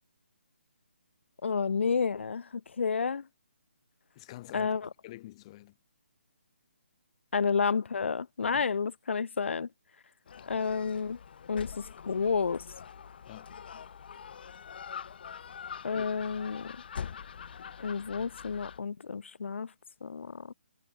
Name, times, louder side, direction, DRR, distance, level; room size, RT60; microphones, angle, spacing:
voice 1, 1.4-2.5 2.8-3.2 4.5-4.9 7.3-9.7 10.5-11.2 11.5-12.6 15.8-16.7 17.8-19.7 20.0-20.5, left 5 dB, 75° left, 0.3 m, -30 dB
voice 2, 4.2-5.7 8.4-8.6 13.3-13.5 15.9-16.1, left 17 dB, 30° left, 5.4 m, -47 dB
Gull seagull, 10.3-18.8, left 7 dB, 50° left, 6.8 m, -44 dB
hypercardioid pair, 155°, 6 cm